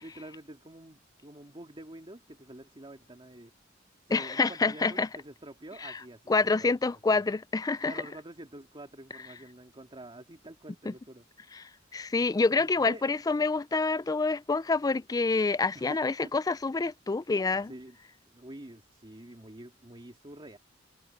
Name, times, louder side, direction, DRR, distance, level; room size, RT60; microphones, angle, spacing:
voice 1, 0.0-3.5 4.1-6.7 7.8-11.2 11.8-11.9 12.6-13.0 15.7-16.3 17.5-18.0 18.3-20.6, right 1 dB, 25° right, 2.1 m, -47 dB
voice 2, 4.1-5.1 5.8-6.0 6.3-7.9 10.9-11.0 11.9-17.7, left 3 dB, 20° left, 0.4 m, -27 dB
head